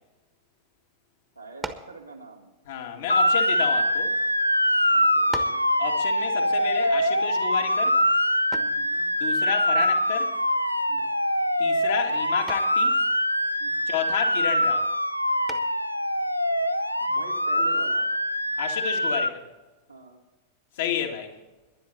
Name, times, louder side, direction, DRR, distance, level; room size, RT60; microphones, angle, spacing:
voice 1, 1.4-2.5 4.9-5.6 8.5-9.1 10.9-11.0 13.6-13.7 17.0-18.1 19.9-20.2, right 3 dB, 90° right, 2.0 m, -43 dB
sound 1, 1.6-2.0 2.9-4.1 4.8-4.9 5.3-5.7 8.5-8.9 10.8-11.1 11.5-11.9 12.5-12.8 15.5-15.9, right 3 dB, 10° right, 1.3 m, -39 dB
voice 2, 2.7-4.2 5.8-8.0 9.2-10.4 11.6-13.0 13.9-14.9 18.6-19.5 20.7-21.4, left 9 dB, 55° left, 2.2 m, -31 dB
Motor vehicle (road) / Siren, 3.1-19.3, equal, 90° left, 0.6 m, -24 dB
19.5 x 11.0 x 4.2 m
figure-of-eight pair, 90°, 0 cm